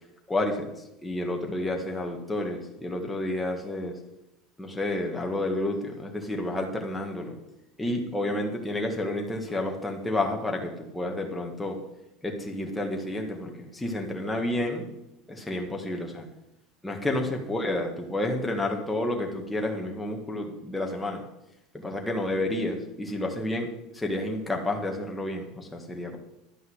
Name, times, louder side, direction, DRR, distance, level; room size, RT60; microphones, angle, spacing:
voice 1, 0.3-0.7 1.0-4.0 4.6-7.4 7.8-11.8 12.2-14.9 15.3-16.3 16.8-21.2 21.7-26.2, left 1 dB, 5° left, 1 dB, 1.7 m, -30 dB
11.5 x 5.4 x 8.1 m, 0.90 s
supercardioid pair, 150°, 0 cm